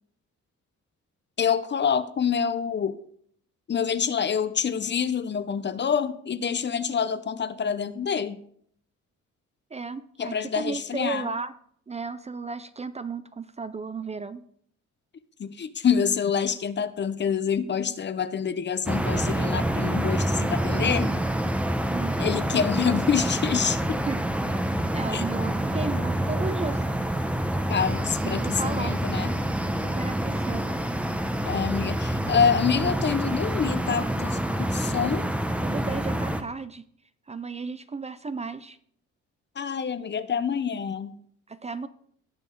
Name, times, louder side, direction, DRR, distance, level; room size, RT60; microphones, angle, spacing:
voice 1, 1.4-3.0 3.7-8.4 10.2-11.3 15.4-21.1 22.2-24.0 25.1-25.2 25.8-26.1 27.7-29.3 31.5-35.4 39.6-41.1, left 7 dB, 35° left, 14 dB, 0.7 m, -26 dB
voice 2, 9.7-11.5 11.9-14.4 21.9-22.2 24.1-24.2 24.9-26.9 28.2-29.0 29.8-30.7 35.6-36.9 37.3-38.8 41.5-41.9, right 4 dB, 20° right, 13 dB, 0.5 m, -34 dB
sound 1, 18.9-36.4, right 1 dB, 5° right, 0.9 m, -27 dB
18.0 x 6.2 x 3.7 m, 0.64 s
cardioid pair, 90°, 30 cm